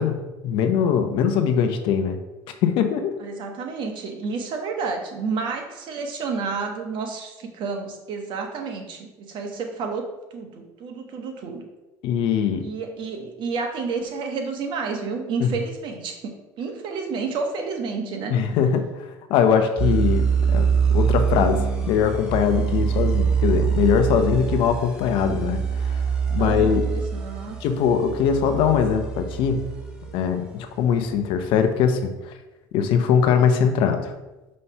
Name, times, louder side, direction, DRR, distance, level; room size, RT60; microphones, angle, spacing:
voice 1, 0.0-2.2 2.6-3.1 12.0-12.6 15.4-15.5 18.3-19.0 19.3-20.2 20.5-26.0 26.3-26.9 27.6-29.7 30.1-32.3 32.7-34.1, left 7 dB, 65° left, 7 dB, 0.8 m, -21 dB
voice 2, 3.2-10.1 10.3-11.6 12.6-18.3 26.4-27.6, right 4 dB, 55° right, 3 dB, 1.1 m, -30 dB
sound 1, 19.8-30.3, right 6 dB, 10° right, 1.4 m, -24 dB
5.6 x 3.2 x 5.7 m, 1.1 s
supercardioid pair, 95°, 9 cm